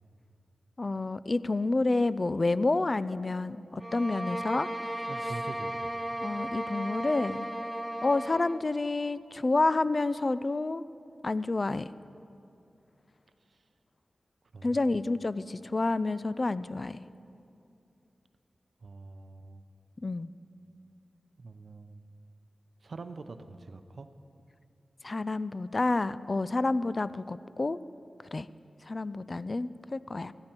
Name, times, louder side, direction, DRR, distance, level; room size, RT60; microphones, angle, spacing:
voice 1, 0.8-4.7 6.2-7.5 8.0-10.8 11.2-11.9 14.6-17.0 20.0-20.3 25.0-27.8 28.3-28.5 28.8-30.3, left 2 dB, 45° left, 16 dB, 0.4 m, -29 dB
sound 1, 3.8-8.6, right 1 dB, 5° right, 0.7 m, -35 dB
voice 2, 5.1-6.0 13.5-13.7 14.5-14.9 18.8-19.6 21.4-22.0 22.8-24.1, right 3 dB, 70° right, 9 dB, 0.6 m, -44 dB
15.5 x 14.0 x 4.5 m, 2.6 s
cardioid pair, 50°, 0 cm